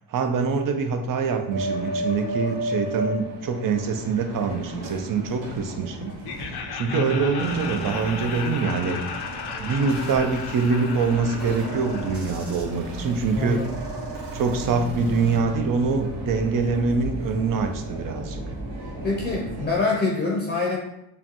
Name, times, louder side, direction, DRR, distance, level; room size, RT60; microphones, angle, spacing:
voice 1, 0.1-6.1 6.7-9.0 9.6-13.7 14.3-18.4, right 4 dB, 50° right, 6 dB, 0.6 m, -24 dB
sound 1, 1.5-19.7, equal, 80° right, 1.1 m, -35 dB
Laughter, 6.2-13.2, left 6 dB, 65° left, 0.5 m, -35 dB
voice 2, 6.9-7.3 13.3-13.8 19.0-20.8, left 3 dB, 25° left, -3 dB, 0.6 m, -25 dB
sound 2, 7.4-15.4, right 4 dB, 35° right, 1.4 m, -37 dB
5.0 x 2.3 x 2.9 m, 0.83 s
cardioid pair, 115°, 42 cm